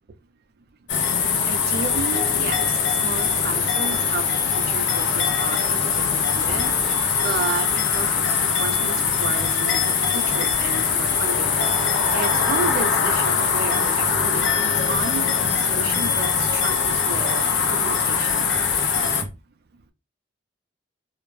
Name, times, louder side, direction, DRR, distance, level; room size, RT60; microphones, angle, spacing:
sound 1, 0.9-19.2, left 6 dB, 85° left, 0.5 m, -22 dB
voice 1, 1.5-2.7 3.0-4.2 4.5-8.1 8.4-8.9 9.2-11.6 12.1-17.4 17.7-18.4, right 5 dB, 60° right, 0.4 m, -32 dB
2.4 x 2.0 x 3.1 m
head